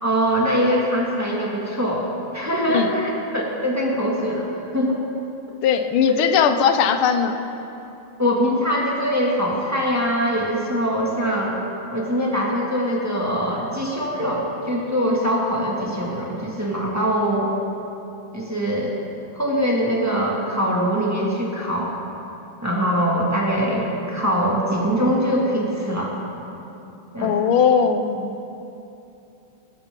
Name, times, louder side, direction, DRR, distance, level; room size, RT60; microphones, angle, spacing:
voice 1, 0.0-5.0 6.2-6.3 8.2-11.6 11.9-17.5 18.3-19.0 19.3-22.0 22.6-26.2 27.1-27.4, equal, 10° right, -4 dB, 1.8 m, -23 dB
voice 2, 5.6-7.4 27.2-28.3, left 7 dB, 85° left, 8 dB, 1.6 m, -19 dB
19.5 x 13.5 x 3.8 m, 2.9 s
omnidirectional pair, 2.3 m